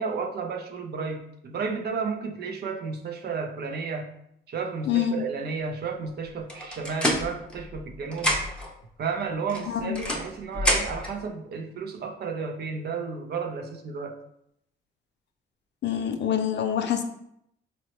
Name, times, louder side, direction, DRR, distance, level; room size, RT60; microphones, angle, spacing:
voice 1, 0.0-4.1 4.5-8.4 9.0-14.2, right 5 dB, 55° right, 4 dB, 0.5 m, -32 dB
voice 2, 4.9-5.2 9.7-10.0 15.8-17.0, left 9 dB, 60° left, 6 dB, 0.4 m, -26 dB
sound 1, 6.5-7.9 8.1-8.7 9.5-11.2, equal, 5° left, 0.7 m, -28 dB
4.2 x 2.0 x 2.9 m, 0.75 s
cardioid pair, 90°, 20 cm